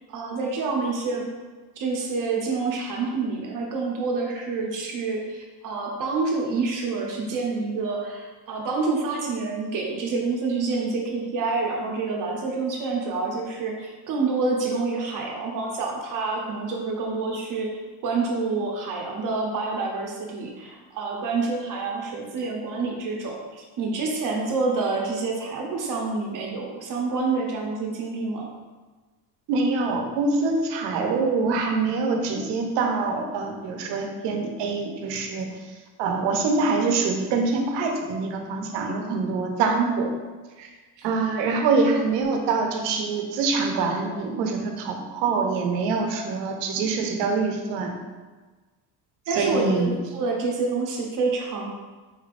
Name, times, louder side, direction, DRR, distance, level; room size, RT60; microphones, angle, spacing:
voice 1, 0.1-1.3 1.8-17.7 18.0-28.5 41.0-41.1 49.3-51.7, right 3 dB, 50° right, -1 dB, 0.7 m, -27 dB
voice 2, 29.5-35.5 36.0-40.1 40.6-40.7 41.0-48.0 49.3-49.9, right 4 dB, 90° right, 3 dB, 0.7 m, -25 dB
4.6 x 3.2 x 2.5 m, 1.3 s
cardioid pair, 150°, 41 cm